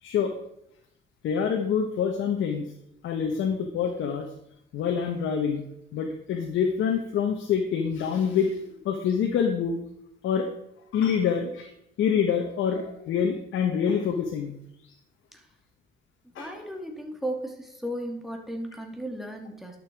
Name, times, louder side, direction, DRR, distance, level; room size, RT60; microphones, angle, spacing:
voice 1, 0.0-0.3 1.2-2.7 3.0-4.3 4.7-5.6 5.9-9.8 10.2-10.5 10.9-11.7 12.0-14.6 16.3-16.5, left 7 dB, 80° left, 3 dB, 1.2 m, -26 dB
voice 2, 16.2-19.8, equal, ahead, 1 dB, 2.6 m, -35 dB
11.0 x 6.7 x 4.7 m, 0.76 s
cardioid pair, 90°, 20 cm